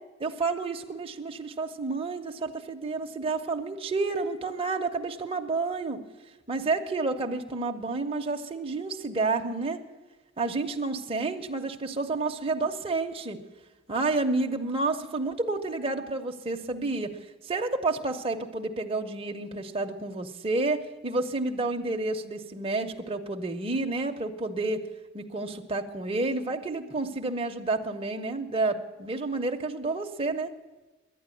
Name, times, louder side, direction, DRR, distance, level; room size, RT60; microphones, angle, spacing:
voice 1, 0.2-6.0 6.5-9.8 10.4-13.4 13.9-17.1 17.4-24.8 25.1-30.5, right 3 dB, 25° right, 3 dB, 0.7 m, -30 dB
11.5 x 9.6 x 9.0 m, 1.2 s
head